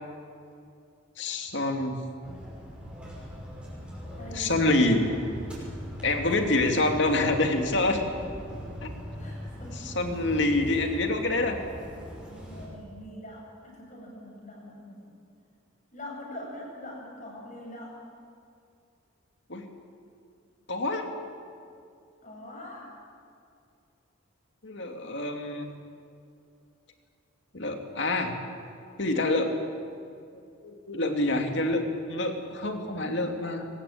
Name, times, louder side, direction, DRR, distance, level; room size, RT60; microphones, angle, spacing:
voice 1, 1.2-2.0 4.3-5.1 6.0-8.0 8.8-8.9 9.8-11.6 19.5-19.6 20.7-21.1 24.6-25.7 27.5-28.3 29.0-29.6 30.6-33.7, left 2 dB, 60° left, 4 dB, 2.7 m, -26 dB
sound 1, 2.2-12.7, equal, 5° right, 6.1 m, -40 dB
voice 2, 4.1-5.3 6.5-7.2 7.6-8.0 9.2-10.2 10.6-11.0 12.4-15.1 15.9-18.0 22.2-23.0, left 1 dB, 40° left, -1 dB, 7.3 m, -43 dB
23.5 x 20.0 x 8.7 m, 2.4 s
head